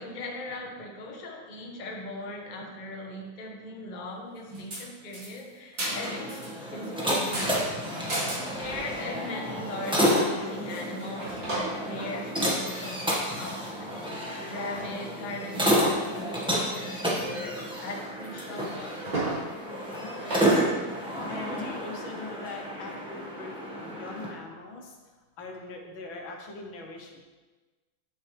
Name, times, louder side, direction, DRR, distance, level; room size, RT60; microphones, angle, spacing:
voice 1, 0.0-6.4 6.7-7.6 8.5-19.0, left 2 dB, 30° left, -1 dB, 0.8 m, -39 dB
sound 1, 4.5-4.8 5.1-6.5 6.8-9.0 9.4-9.5 9.7-10.0 10.4-12.9 13.4-13.5 13.7-14.2 14.6-15.0 15.4-16.4 16.7-16.8 17.2-17.7 18.0-18.1 18.4-19.4 19.9-20.0 20.3-20.5, right 2 dB, 55° right, 3.6 m, -35 dB
sound 2, 5.8-24.3, equal, 5° right, 1.2 m, -30 dB
voice 2, 19.9-20.8 21.3-25.0 25.4-27.2, left 2 dB, 70° left, 1 dB, 1.8 m, -42 dB
8.9 x 7.9 x 3.3 m, 1.3 s
omnidirectional pair, 2.3 m